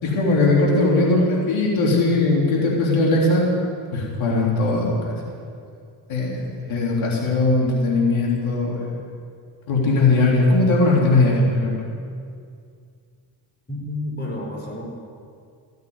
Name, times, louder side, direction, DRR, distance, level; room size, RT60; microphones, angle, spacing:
voice 1, 0.0-3.5 3.9-5.3 6.1-8.9 9.7-11.9, left 2 dB, 80° left, -3 dB, 3.5 m, -19 dB
voice 2, 13.7-14.9, left 1 dB, 20° left, -2 dB, 5.0 m, -30 dB
16.0 x 9.2 x 9.6 m, 2.3 s
cardioid pair, 90°, 46 cm